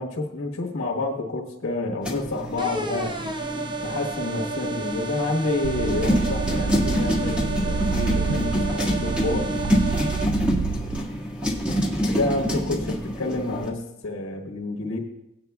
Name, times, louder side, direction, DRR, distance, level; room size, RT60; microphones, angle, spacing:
voice 1, 0.0-3.2 3.8-9.5 12.1-15.0, left 2 dB, 65° left, 0 dB, 1.3 m, -29 dB
sound 1, 2.0-13.7, equal, 5° right, 1.8 m, -27 dB
sound 2, 2.6-10.3, right 3 dB, 20° right, 0.6 m, -31 dB
sound 3, 5.6-11.0, right 5 dB, 80° right, 0.4 m, -28 dB
17.5 x 9.0 x 2.3 m, 0.92 s
head